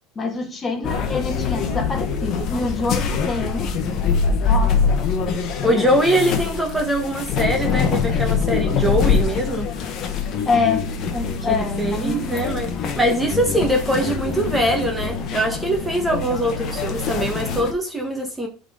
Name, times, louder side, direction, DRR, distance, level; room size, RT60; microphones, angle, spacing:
voice 1, 0.2-3.7 4.5-5.0 10.5-10.8 11.1-12.3, left 4 dB, 25° left, 1.7 m, -25 dB
sound 1, 0.8-17.7, left 5 dB, 45° left, 1.3 m, -24 dB
voice 2, 5.6-9.7 11.4-18.5, right 1 dB, 5° right, 1.4 m, -22 dB
11.0 x 4.0 x 3.8 m
supercardioid pair, 125°, 0 cm